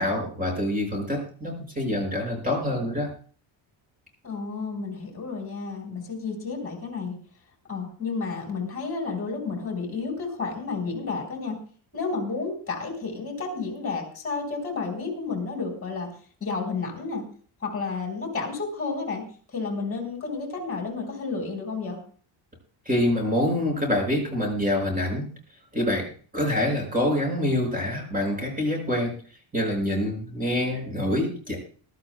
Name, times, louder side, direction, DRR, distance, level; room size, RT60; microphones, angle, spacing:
voice 1, 0.0-3.1 22.8-25.3 25.7-29.1 29.5-31.6, left 1 dB, 15° right, 1 dB, 5.8 m, -26 dB
voice 2, 4.2-7.1 7.7-11.6 11.9-16.1 16.4-17.3 17.6-19.2 19.5-22.0, left 4 dB, 30° left, 2 dB, 4.3 m, -31 dB
23.0 x 12.0 x 2.2 m, 0.42 s
cardioid pair, 160°, 50 cm